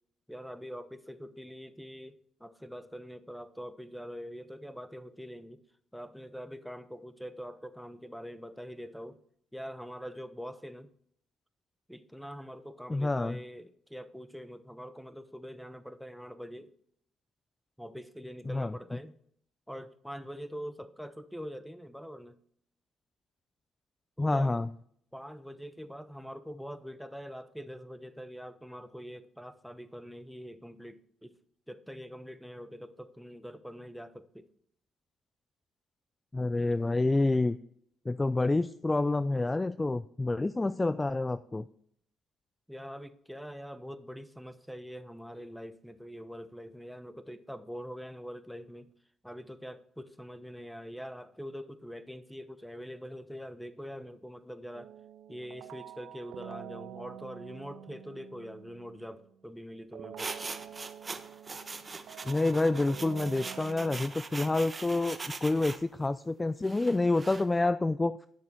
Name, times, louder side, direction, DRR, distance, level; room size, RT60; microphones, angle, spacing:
voice 1, 0.3-5.6 5.9-9.2 9.5-10.9 11.9-16.7 17.8-19.1 19.7-22.4 24.2-24.6 25.1-31.3 31.7-34.5 42.7-48.9 49.2-54.9 55.3-60.3, equal, ahead, 12 dB, 0.9 m, -44 dB
voice 2, 12.9-13.4 18.5-18.7 24.2-24.7 36.3-37.6 38.1-41.6 62.2-68.2, left 2 dB, 20° left, 14 dB, 0.4 m, -28 dB
sound 1, 54.7-59.4 59.9-64.0, right 11 dB, 70° right, 0.4 m, -47 dB
sound 2, 60.2-65.8 66.6-67.4, right 3 dB, 30° right, 1.0 m, -42 dB
11.0 x 6.7 x 4.4 m, 0.65 s
supercardioid pair, 75°, 0 cm